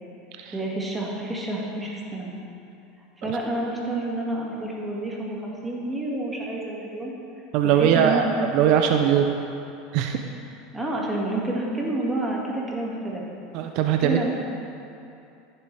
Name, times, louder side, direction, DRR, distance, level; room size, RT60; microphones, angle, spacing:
voice 1, 0.5-2.3 3.2-7.1 7.7-8.3 10.7-13.2 14.0-14.3, right 2 dB, 15° right, -3 dB, 2.0 m, -29 dB
voice 2, 7.5-9.3 9.9-10.2 13.5-14.2, right 8 dB, 60° right, 4 dB, 0.6 m, -21 dB
14.5 x 7.2 x 3.4 m, 2.7 s
hypercardioid pair, 95°, 0 cm